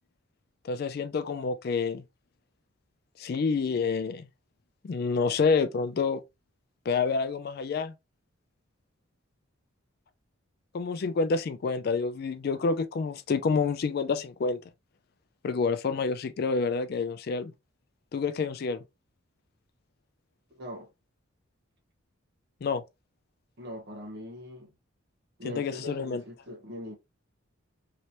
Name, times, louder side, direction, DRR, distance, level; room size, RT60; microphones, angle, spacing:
voice 1, 0.6-2.0 3.2-4.3 4.8-6.2 6.9-7.9 10.7-14.6 15.4-17.5 18.1-18.8 22.6-22.8 25.4-26.2, left 4 dB, 50° left, 0.3 m, -28 dB
voice 2, 20.5-20.9 23.6-24.7 25.4-26.9, left 1 dB, 55° right, 1.1 m, -41 dB
3.2 x 2.8 x 2.8 m
head